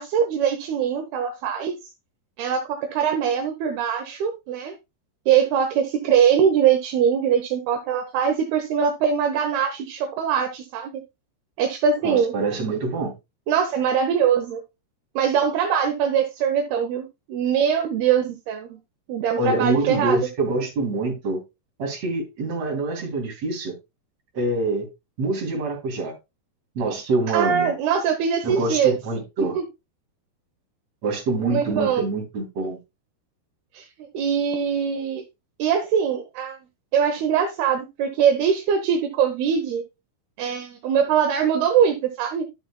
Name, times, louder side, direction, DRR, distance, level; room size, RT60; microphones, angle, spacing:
voice 1, 0.0-1.9 2.4-4.8 5.3-11.0 11.6-12.3 13.5-14.6 15.2-18.8 19.1-20.2 27.3-28.9 29.4-29.6 31.5-32.0 33.7-33.9 34.1-35.2 35.6-36.6 36.9-39.8 40.4-42.4, right 8 dB, 75° right, 2.9 m, -22 dB
voice 2, 12.0-13.1 19.4-21.4 21.8-23.8 24.3-24.9 25.2-26.2 26.8-27.7 28.4-29.6 31.0-32.8, right 3 dB, 45° right, 4.0 m, -25 dB
12.0 x 7.5 x 2.3 m
omnidirectional pair, 4.7 m